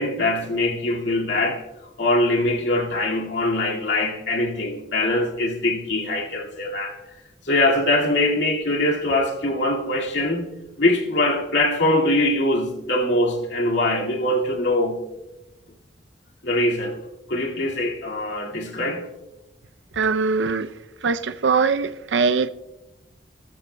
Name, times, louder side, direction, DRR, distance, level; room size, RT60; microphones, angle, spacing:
voice 1, 0.0-1.6 2.0-7.0 7.4-10.5 10.8-15.0 16.4-17.0 17.3-19.1, left 1 dB, 75° left, 2.1 m, -22 dB
voice 2, 20.0-20.7 21.0-22.5, right 5 dB, 85° right, 0.5 m, -21 dB
18.5 x 13.5 x 2.2 m
head